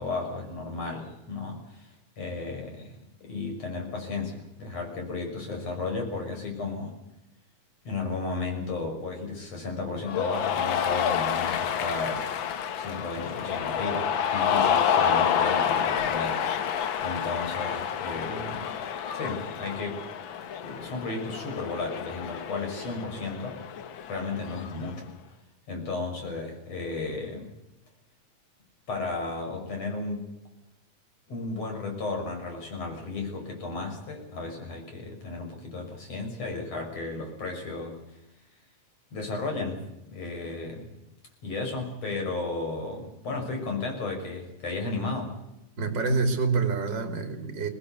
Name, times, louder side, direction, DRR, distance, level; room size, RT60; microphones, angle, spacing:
voice 1, 0.0-1.9 2.2-7.0 7.9-12.3 12.8-18.7 19.1-20.0 20.6-23.6 24.1-25.1 25.7-27.5 28.9-30.3 31.3-38.0 39.1-40.9 41.4-45.4, left 3 dB, 50° left, 2 dB, 7.2 m, -34 dB
Cheering, 10.1-24.9, left 8 dB, 70° left, 1.2 m, -29 dB
voice 2, 45.8-47.7, right 4 dB, 35° right, 6 dB, 3.2 m, -26 dB
23.0 x 19.0 x 8.2 m, 0.89 s
omnidirectional pair, 3.6 m